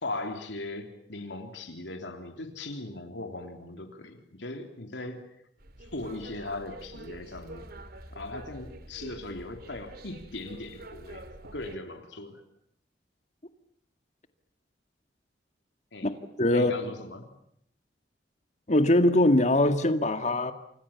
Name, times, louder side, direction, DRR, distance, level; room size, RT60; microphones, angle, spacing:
voice 1, 0.0-5.3 5.9-7.7 8.1-11.2 11.5-12.4 15.9-16.1 16.5-17.3, left 2 dB, 80° left, 6 dB, 3.3 m, -39 dB
sound 1, 5.6-11.8, right 1 dB, 60° right, 3.0 m, -46 dB
voice 2, 16.4-16.7 18.7-20.5, left 1 dB, 40° left, 8 dB, 2.1 m, -22 dB
29.5 x 26.5 x 7.3 m, 0.69 s
head